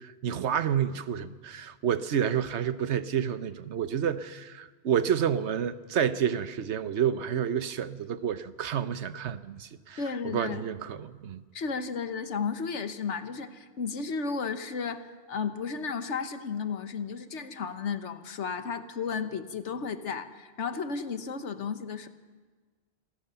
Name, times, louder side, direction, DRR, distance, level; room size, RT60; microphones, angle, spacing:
voice 1, 0.0-11.4, right 8 dB, 80° right, 1.1 m, -29 dB
voice 2, 10.0-10.6 11.5-22.1, left 5 dB, 90° left, 1.4 m, -33 dB
27.0 x 16.5 x 6.9 m
omnidirectional pair, 1.2 m